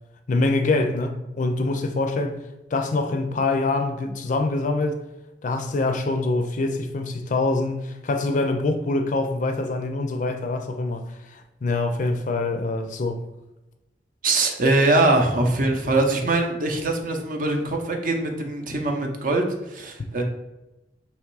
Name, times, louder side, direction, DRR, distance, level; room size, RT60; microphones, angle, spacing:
voice 1, 0.3-2.4 2.7-5.0 5.4-13.2, left 2 dB, 45° left, 0.4 m, -25 dB
voice 2, 14.2-20.2, right 2 dB, 50° right, 0.7 m, -22 dB
3.5 x 3.0 x 4.6 m
head